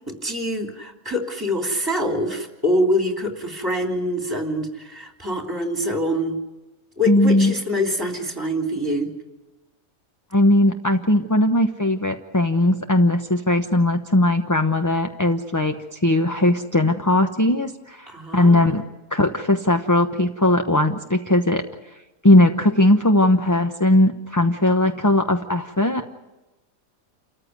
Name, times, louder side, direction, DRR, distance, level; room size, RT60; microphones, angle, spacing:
voice 1, 0.1-6.4 7.0-9.1 18.1-18.7, equal, 15° right, 2 dB, 3.3 m, -25 dB
voice 2, 7.1-7.5 10.3-18.8 19.1-21.6 22.2-26.1, left 1 dB, 15° left, 5 dB, 0.8 m, -19 dB
29.0 x 14.5 x 9.7 m, 1.1 s
omnidirectional pair, 1.5 m